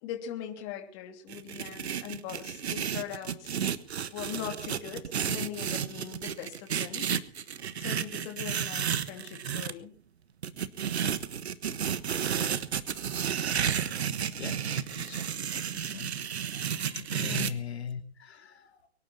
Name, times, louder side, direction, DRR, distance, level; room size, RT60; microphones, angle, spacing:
voice 1, 0.0-3.6 4.1-7.1 7.8-10.0 17.1-17.6, left 10 dB, 25° left, 3 dB, 2.9 m, -41 dB
sound 1, 1.3-9.7 10.4-17.5, right 8 dB, 75° right, 1.4 m, -32 dB
voice 2, 14.3-16.1 16.5-18.9, left 7 dB, 75° left, 6 dB, 2.9 m, -41 dB
24.0 x 11.5 x 4.2 m, 0.37 s
hypercardioid pair, 155°, 33 cm